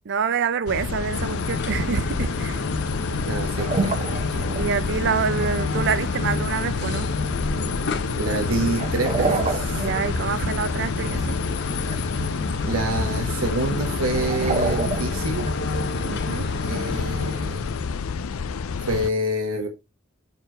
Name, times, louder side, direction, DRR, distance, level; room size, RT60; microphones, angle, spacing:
voice 1, 0.1-2.6 4.5-7.2 9.8-11.4 16.1-16.5, right 6 dB, 60° right, 0.5 m, -26 dB
sound 1, 0.7-19.1, left 5 dB, 75° left, 0.5 m, -30 dB
sound 2, 1.1-18.1, left 3 dB, 55° left, 1.0 m, -29 dB
sound 3, 3.1-3.2 3.5-4.7 8.7-10.6 11.0-11.5 11.9-12.1 12.5-13.1 13.7-13.8 14.0-15.5 16.3-16.9, right 3 dB, 30° right, 1.1 m, -28 dB
voice 2, 3.3-4.0 4.3-4.5 8.2-9.9 12.6-15.5 16.6-17.7 18.9-19.7, right 1 dB, 75° right, 1.2 m, -27 dB
7.2 x 4.5 x 3.9 m
head